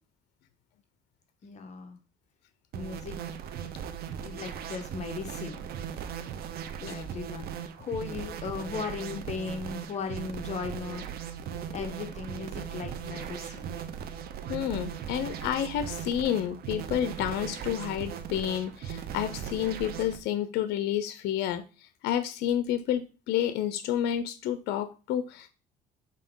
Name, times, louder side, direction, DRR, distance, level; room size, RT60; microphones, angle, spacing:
voice 1, 1.4-2.0 2.7-3.2 4.2-5.7 6.8-7.5 7.8-11.1 11.7-13.7, left 5 dB, 45° left, 5 dB, 1.1 m, -37 dB
sound 1, 2.7-20.2, right 8 dB, 65° right, 0.8 m, -38 dB
voice 2, 14.5-25.5, left 10 dB, 80° left, 11 dB, 0.6 m, -30 dB
7.5 x 4.1 x 3.7 m, 0.34 s
cardioid pair, 110°, 17 cm